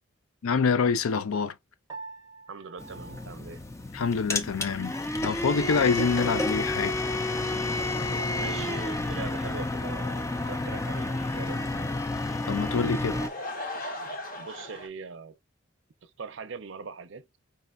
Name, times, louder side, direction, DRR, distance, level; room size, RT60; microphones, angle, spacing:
voice 1, 0.4-1.5 3.9-4.9 5.2-7.0 12.5-13.1, left 5 dB, 80° left, 0.5 m, -26 dB
Piano, 1.9-4.4, right 4 dB, 15° right, 0.8 m, -47 dB
voice 2, 2.5-3.6 8.4-12.0 14.4-15.4 16.0-17.4, right 5 dB, 60° right, 0.5 m, -41 dB
sound 1, 2.8-13.3, left 2 dB, 15° left, 0.4 m, -30 dB
sound 2, 5.5-14.9, left 1 dB, 40° left, 0.8 m, -42 dB
4.8 x 3.2 x 2.4 m
head